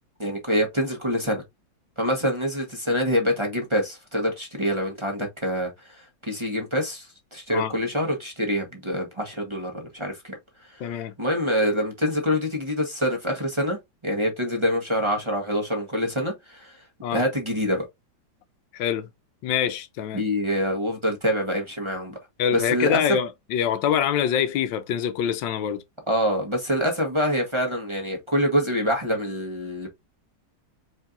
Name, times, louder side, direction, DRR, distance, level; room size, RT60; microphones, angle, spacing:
voice 1, 0.2-1.4 2.0-7.1 7.3-10.4 10.7-16.8 17.1-17.9 20.1-22.2 22.5-23.0 26.1-29.9, equal, 20° right, 1.2 m, -26 dB
voice 2, 10.8-11.1 17.0-17.2 18.7-19.1 19.4-20.3 22.4-25.8, left 9 dB, 85° left, 1.4 m, -25 dB
4.5 x 4.2 x 2.6 m
omnidirectional pair, 2.0 m